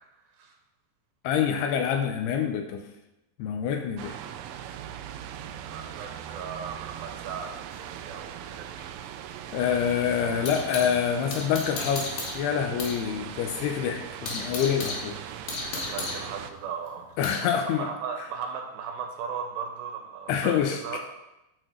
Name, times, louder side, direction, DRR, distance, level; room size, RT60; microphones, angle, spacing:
voice 1, 1.2-2.8 3.4-4.2 9.5-15.2 17.2-17.9 20.3-21.0, left 8 dB, 85° left, 5 dB, 2.3 m, -26 dB
sound 1, 4.0-16.5, right 10 dB, 90° right, 3.1 m, -40 dB
voice 2, 5.4-8.9 15.7-21.0, right 6 dB, 70° right, 2 dB, 2.8 m, -37 dB
sound 2, 7.7-11.0 11.3-13.0 13.3-13.4 13.8-17.5, left 3 dB, 60° left, 2.9 m, -36 dB
11.5 x 4.4 x 6.2 m, 0.93 s
omnidirectional pair, 5.5 m